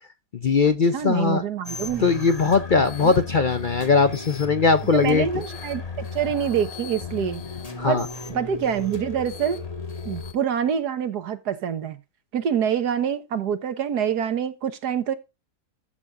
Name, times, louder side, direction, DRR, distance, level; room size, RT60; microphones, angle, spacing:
voice 1, 0.4-1.4 2.0-5.3 7.8-8.1, left 4 dB, 55° left, 0.5 m, -20 dB
voice 2, 0.9-2.2 3.0-3.2 4.9-7.4 7.8-8.0 8.3-9.6 10.0-12.0 12.3-15.1, right 8 dB, 75° right, 1.7 m, -26 dB
sound 1, 1.6-10.3, left 3 dB, 25° left, 1.5 m, -35 dB
13.5 x 7.0 x 2.5 m
omnidirectional pair, 1.7 m